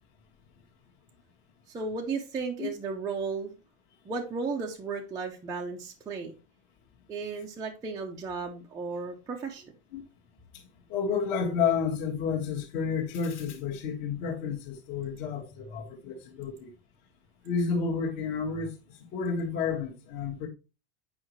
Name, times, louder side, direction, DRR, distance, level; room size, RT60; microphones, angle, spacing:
voice 1, 1.7-3.5 4.0-6.4 7.1-9.6, right 4 dB, 10° right, 0.5 m, -34 dB
voice 2, 10.9-16.7 17.4-20.5, left 6 dB, 45° left, 1.6 m, -30 dB
8.7 x 5.1 x 3.1 m
supercardioid pair, 180°, 37 cm